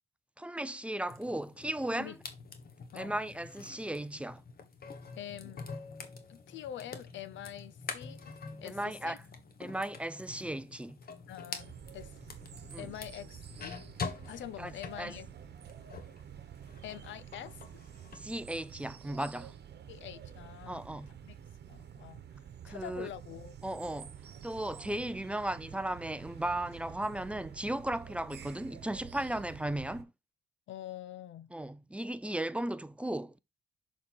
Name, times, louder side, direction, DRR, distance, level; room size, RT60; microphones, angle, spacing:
voice 1, 0.4-2.1 2.9-4.4 8.6-9.2 9.6-11.0 12.7-12.9 14.6-15.1 18.1-19.5 20.7-21.2 22.6-23.1 23.6-30.1 31.5-33.4, right 1 dB, 5° right, 0.4 m, -36 dB
sound 1, 1.1-16.2 16.6-18.2, left 5 dB, 50° left, 1.3 m, -46 dB
voice 2, 5.1-5.6 6.3-8.2 8.6-9.2 11.3-12.1 12.8-13.8 14.2-15.3 16.8-17.6 19.9-20.9 21.3-21.4 21.7-23.5 30.7-31.5, left 11 dB, 70° left, 0.6 m, -45 dB
sound 2, 11.6-30.0, right 8 dB, 55° right, 1.1 m, -49 dB
6.6 x 4.2 x 4.3 m
cardioid pair, 90°, 20 cm